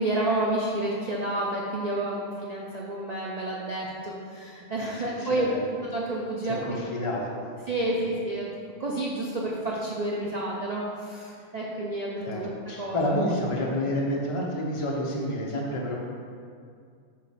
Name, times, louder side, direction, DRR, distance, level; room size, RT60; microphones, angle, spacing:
voice 1, 0.0-5.5 5.9-6.8 7.7-8.5 8.8-12.5 12.8-13.0, right 1 dB, 45° right, -4 dB, 0.5 m, -30 dB
voice 2, 4.8-5.6 6.4-7.4 8.0-8.1 12.2-16.0, left 1 dB, 25° left, -2 dB, 0.7 m, -29 dB
7.4 x 2.5 x 5.7 m, 2.3 s
omnidirectional pair, 1.5 m